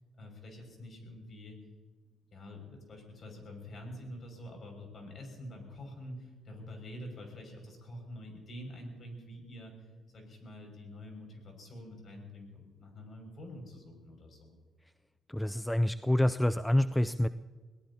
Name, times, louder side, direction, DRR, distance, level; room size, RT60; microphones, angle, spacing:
voice 1, 0.2-1.6 2.3-14.6, left 1 dB, 50° left, 3 dB, 6.2 m, -47 dB
voice 2, 15.3-17.3, left 1 dB, 5° left, 11 dB, 0.4 m, -27 dB
23.0 x 18.5 x 2.9 m, 1.4 s
cardioid pair, 90°, 0 cm